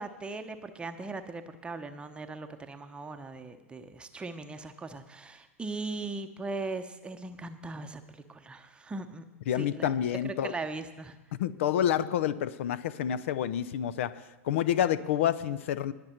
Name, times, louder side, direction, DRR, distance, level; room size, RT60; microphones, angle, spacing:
voice 1, 0.0-9.2 9.5-9.9 10.2-11.2, right 3 dB, 15° right, 7 dB, 0.8 m, -39 dB
voice 2, 9.5-10.5 11.4-15.9, left 10 dB, 60° left, 17 dB, 0.7 m, -28 dB
20.5 x 6.8 x 4.4 m, 1.0 s
figure-of-eight pair, 95°, 8 cm